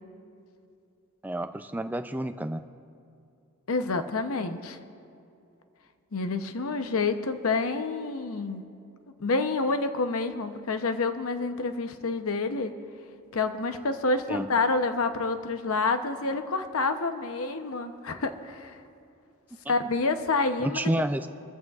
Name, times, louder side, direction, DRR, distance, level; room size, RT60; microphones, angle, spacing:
voice 1, 1.2-2.6 14.3-14.5 20.6-21.3, right 1 dB, 10° right, 9 dB, 0.3 m, -29 dB
voice 2, 3.7-4.8 6.1-8.6 9.2-12.7 13.3-18.8 19.7-20.8, left 3 dB, 75° left, 8 dB, 0.8 m, -28 dB
22.0 x 14.0 x 2.4 m, 2.6 s
head